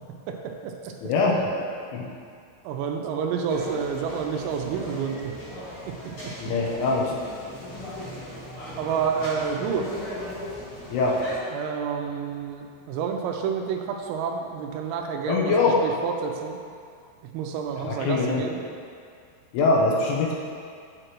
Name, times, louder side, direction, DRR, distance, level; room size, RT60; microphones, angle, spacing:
voice 1, 0.3-0.9 1.5-1.6 2.6-5.3 5.9-6.0 8.8-9.9 11.5-15.5 15.8-16.6 17.3-18.6, right 6 dB, 90° right, 3 dB, 3.4 m, -29 dB
voice 2, 1.0-1.5 1.9-2.1 6.4-7.1 10.9-11.1 15.3-15.8 17.8-18.4 19.5-20.3, left 3 dB, 80° left, -3 dB, 3.3 m, -22 dB
sound 1, 3.5-11.4, left 1 dB, 50° left, 2.1 m, -38 dB
8.4 x 7.8 x 3.0 m, 2.4 s
omnidirectional pair, 5.9 m